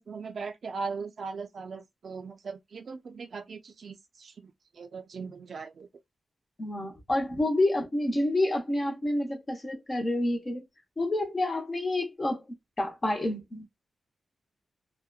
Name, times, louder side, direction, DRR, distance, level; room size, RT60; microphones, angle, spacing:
voice 1, 0.0-5.9, right 4 dB, 50° right, 0.4 m, -39 dB
voice 2, 6.6-10.6 11.0-12.4 12.8-13.7, left 1 dB, 25° left, 0.7 m, -28 dB
2.7 x 2.1 x 2.2 m
wide cardioid pair, 180°, 0 cm